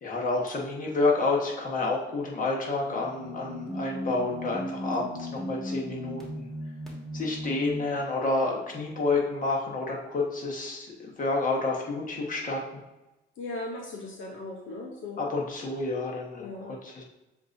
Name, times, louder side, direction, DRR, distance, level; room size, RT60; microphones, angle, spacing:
voice 1, 0.0-6.5 7.1-12.6 15.2-17.0, left 3 dB, 40° left, -2 dB, 1.2 m, -29 dB
sound 1, 2.8-8.0, equal, ahead, 1.5 m, -36 dB
voice 2, 13.4-15.2 16.4-16.7, left 2 dB, 75° left, 0 dB, 0.7 m, -38 dB
7.1 x 2.6 x 2.6 m, 1.0 s
cardioid pair, 90°, 20 cm